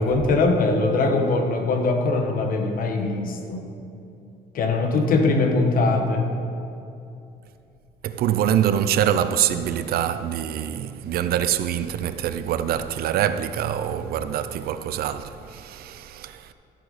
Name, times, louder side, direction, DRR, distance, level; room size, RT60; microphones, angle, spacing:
voice 1, 0.0-3.6 4.5-6.3, left 3 dB, 55° left, 1.3 m, -21 dB
voice 2, 8.0-16.5, right 10 dB, 65° right, 0.5 m, -25 dB
13.5 x 7.8 x 4.2 m
cardioid pair, 110°, 17 cm